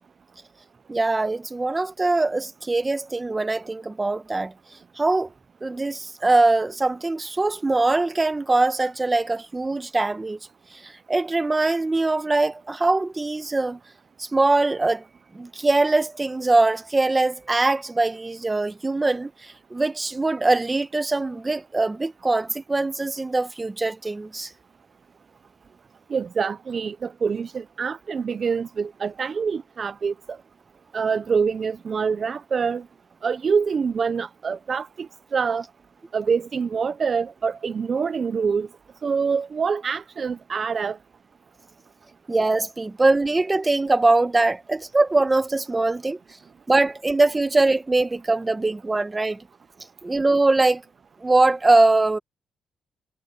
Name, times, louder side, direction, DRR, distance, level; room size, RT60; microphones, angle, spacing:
voice 1, 0.9-4.5 5.0-5.3 5.6-10.4 10.7-13.8 14.2-15.0 15.3-24.5 42.3-46.2 46.7-49.4 50.0-50.8 51.2-52.2, right 2 dB, 20° right, 1.4 m, -22 dB
voice 2, 26.1-30.1 30.9-32.8 33.2-35.1 35.3-35.6 36.1-38.7 39.0-41.0, right 5 dB, 45° right, 0.6 m, -25 dB
cardioid pair, 105°, 0 cm